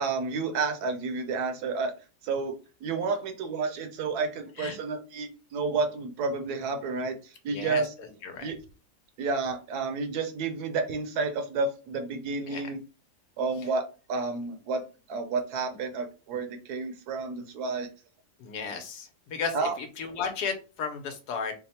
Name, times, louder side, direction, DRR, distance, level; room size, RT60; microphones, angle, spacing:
voice 1, 0.0-1.9 2.2-2.6 2.8-7.9 8.4-8.6 9.2-12.8 13.4-14.8 15.1-17.9 19.5-19.7, right 4 dB, 75° right, 6 dB, 1.1 m, -30 dB
voice 2, 7.5-8.5 12.5-12.7 18.4-21.5, left 5 dB, 75° left, 5 dB, 1.2 m, -34 dB
3.3 x 2.1 x 4.1 m, 0.33 s
omnidirectional pair, 1.8 m